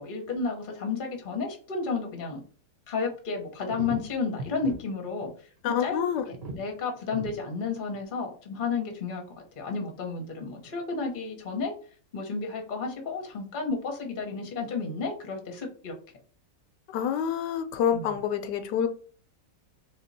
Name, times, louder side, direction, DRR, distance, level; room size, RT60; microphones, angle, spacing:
voice 1, 0.0-2.4 2.9-5.3 5.6-6.0 6.5-9.2 9.6-11.7 12.1-15.9 17.9-18.1, left 4 dB, 35° left, 0.9 m, -32 dB
sound 1, 3.1-3.2 3.7-4.8 5.1-5.3 5.6-5.7 6.2-6.7 7.1-7.3 7.9-8.0, right 2 dB, 40° right, 1.1 m, -38 dB
voice 2, 5.6-6.2 16.9-18.9, left 8 dB, 80° left, 1.2 m, -27 dB
3.7 x 2.9 x 4.1 m
omnidirectional pair, 1.9 m